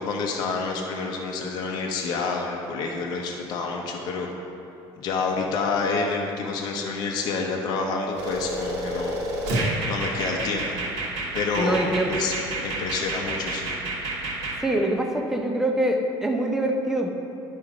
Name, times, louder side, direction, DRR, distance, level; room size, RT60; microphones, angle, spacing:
voice 1, 0.0-4.3 5.0-9.2 9.9-10.7 11.3-11.8 12.1-13.7, left 4 dB, 50° left, 0 dB, 0.8 m, -28 dB
sound 1, 8.2-14.6, right 1 dB, 80° right, 1.6 m, -29 dB
voice 2, 11.6-12.1 14.6-17.1, right 1 dB, 5° right, 3 dB, 0.5 m, -24 dB
11.0 x 4.3 x 5.0 m, 2.9 s
cardioid pair, 175°, 9 cm